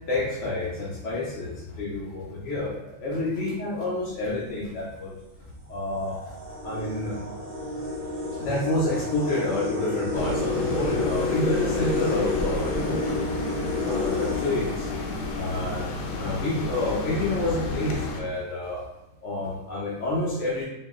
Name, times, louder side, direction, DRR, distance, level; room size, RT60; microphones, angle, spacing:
voice 1, 0.1-5.2 5.7-6.3 6.6-7.2 8.4-13.0 13.8-14.9 15.3-15.8 16.1-18.8 19.2-20.7, left 2 dB, 60° left, -7 dB, 1.1 m, -29 dB
sound 1, 4.2-4.3 5.2-5.3 5.7-15.5, left 2 dB, 45° right, 0.6 m, -30 dB
sound 2, 10.1-18.2, left 3 dB, 85° left, 1.0 m, -31 dB
4.1 x 2.0 x 3.7 m, 0.93 s
omnidirectional pair, 1.4 m